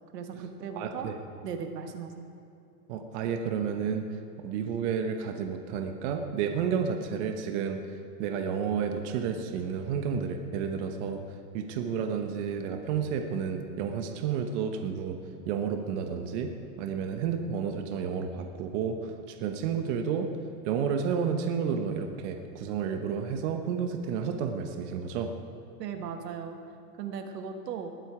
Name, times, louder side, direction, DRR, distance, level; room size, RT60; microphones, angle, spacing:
voice 1, 0.1-1.1 1.4-2.1 25.8-26.6 27.0-27.9, right 6 dB, 80° right, 6 dB, 1.5 m, -37 dB
voice 2, 0.8-1.2 2.9-4.1 4.4-7.8 8.2-11.2 11.5-15.2 15.5-16.5 16.8-20.3 20.6-25.3, right 7 dB, 45° right, 5 dB, 1.0 m, -31 dB
20.0 x 8.1 x 4.8 m, 2.6 s
supercardioid pair, 145°, 48 cm